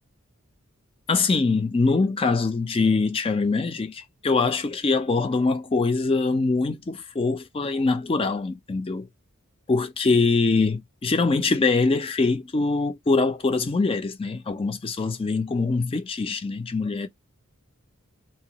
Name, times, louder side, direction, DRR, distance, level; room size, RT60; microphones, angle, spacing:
voice 1, 1.1-9.1 9.7-17.1, left 3 dB, 25° left, 0.4 m, -23 dB
2.8 x 2.2 x 2.8 m
head